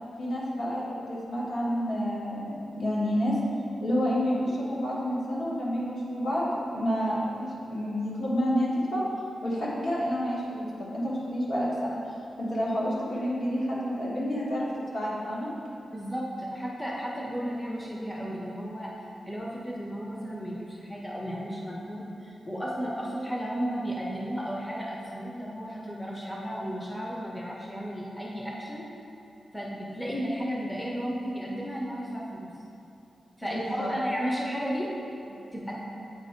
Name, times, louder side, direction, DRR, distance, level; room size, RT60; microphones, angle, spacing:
voice 1, 0.2-3.4 3.8-9.0 9.4-12.0 12.4-14.7 14.9-15.5 33.4-33.9, equal, 70° left, -7 dB, 1.4 m, -29 dB
voice 2, 15.9-18.9 19.3-28.9 29.5-32.5 33.4-34.9 35.3-35.8, equal, 5° left, -3 dB, 0.5 m, -34 dB
8.1 x 2.8 x 4.3 m, 2.7 s
wide cardioid pair, 155°, 0 cm